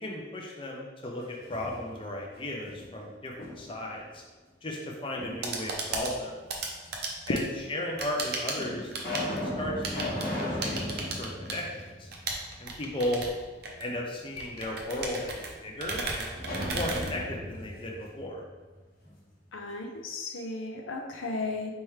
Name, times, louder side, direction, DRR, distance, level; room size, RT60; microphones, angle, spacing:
voice 1, 0.0-4.2 4.6-6.4 7.3-12.1 12.6-13.2 13.8-16.3 16.7-18.4, left 1 dB, 25° left, -1 dB, 0.5 m, -35 dB
sound 1, 1.2-2.2 2.6-3.9 5.2-6.0 6.8-6.9 7.8-7.9 8.5-12.6 12.9-13.0 16.3-19.1, left 1 dB, 45° left, 1.1 m, -37 dB
sound 2, 5.2-17.8, right 3 dB, 55° right, 0.6 m, -37 dB
voice 2, 7.3-7.6 19.5-21.7, left 2 dB, 80° left, 3 dB, 0.5 m, -34 dB
4.3 x 3.5 x 3.1 m, 1.3 s
head